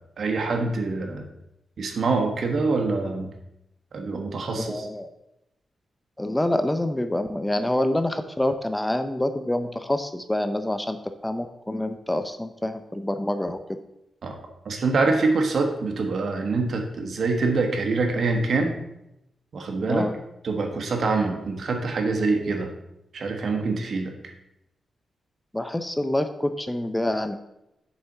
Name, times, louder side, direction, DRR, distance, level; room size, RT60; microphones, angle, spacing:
voice 1, 0.2-1.2 1.8-3.3 3.9-4.9 14.2-14.3 14.6-18.7 19.5-20.1 20.4-22.7 23.1-24.1, right 3 dB, 65° right, 3 dB, 1.4 m, -25 dB
voice 2, 4.5-5.1 6.2-11.0 11.2-13.6 19.9-20.1 25.5-27.3, left 1 dB, 10° left, 8 dB, 0.6 m, -26 dB
7.1 x 4.2 x 6.7 m, 0.85 s
cardioid pair, 85°, 0 cm